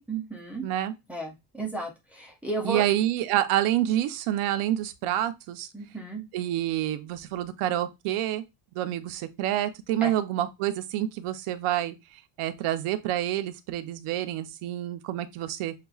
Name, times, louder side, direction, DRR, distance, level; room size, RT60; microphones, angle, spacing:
voice 1, 0.1-0.7 1.1-2.8 5.7-6.2 10.0-10.1, right 2 dB, 5° right, 0.4 m, -33 dB
voice 2, 0.6-0.9 2.6-5.7 6.3-8.4 8.7-15.7, right 12 dB, 80° right, 0.7 m, -28 dB
6.5 x 2.3 x 2.3 m
cardioid pair, 180°, 49 cm